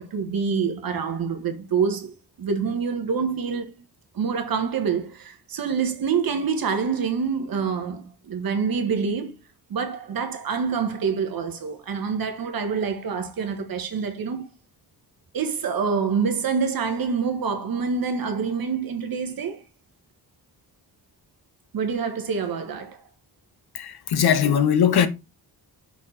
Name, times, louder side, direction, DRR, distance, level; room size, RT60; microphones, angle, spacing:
voice 1, 0.0-2.1 2.4-3.7 4.1-9.4 9.7-14.5 15.3-19.6 21.7-23.0, right 6 dB, 60° right, 1.4 m, -26 dB
voice 2, 23.7-25.1, left 8 dB, 70° left, 1.0 m, -20 dB
6.0 x 4.5 x 4.2 m
wide cardioid pair, 175°, 40 cm